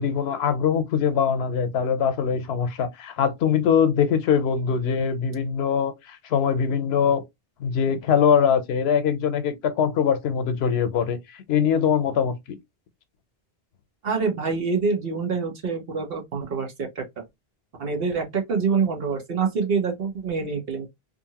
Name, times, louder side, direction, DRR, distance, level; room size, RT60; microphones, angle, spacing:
voice 1, 0.0-7.2 7.6-12.6, left 7 dB, 90° left, 0.9 m, -22 dB
voice 2, 14.0-17.2 17.8-20.9, right 5 dB, 70° right, 1.1 m, -26 dB
2.7 x 2.5 x 2.8 m
omnidirectional pair, 1.0 m